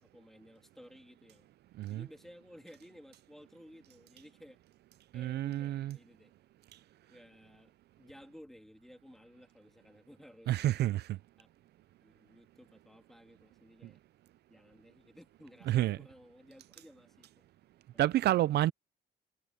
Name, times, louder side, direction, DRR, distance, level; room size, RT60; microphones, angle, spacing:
voice 1, 0.0-1.5 1.9-4.6 5.1-6.3 7.1-7.7 8.0-10.6 11.4-11.5 12.0-14.0 14.5-17.5 17.9-18.0 18.5-18.6, equal, ahead, 2.7 m, -56 dB
voice 2, 5.1-6.0 10.5-11.2 13.8-13.9 15.7-16.0 18.0-18.7, right 14 dB, 70° right, 0.4 m, -29 dB
cardioid pair, 155°, 18 cm